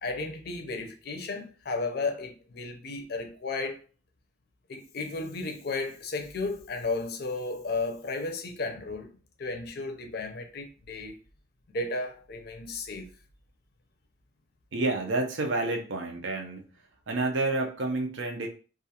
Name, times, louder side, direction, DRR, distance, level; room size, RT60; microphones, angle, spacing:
voice 1, 0.0-3.8 4.7-9.1 9.4-11.2 11.7-13.1, left 3 dB, 50° left, 0.5 m, -34 dB
voice 2, 14.7-16.6 17.1-18.5, right 2 dB, 70° right, 0.6 m, -29 dB
2.4 x 2.3 x 2.8 m
head